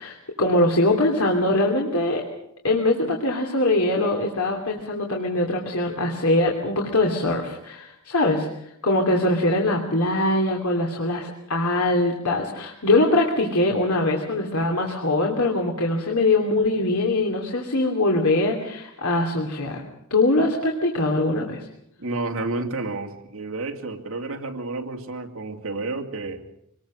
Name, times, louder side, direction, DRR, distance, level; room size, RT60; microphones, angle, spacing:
voice 1, 0.0-2.2 2.6-8.5 8.8-19.8 20.1-21.7, left 2 dB, 80° left, 1 dB, 2.9 m, -22 dB
voice 2, 22.0-26.4, right 3 dB, 70° right, 3 dB, 2.6 m, -30 dB
25.5 x 20.5 x 6.4 m, 0.77 s
head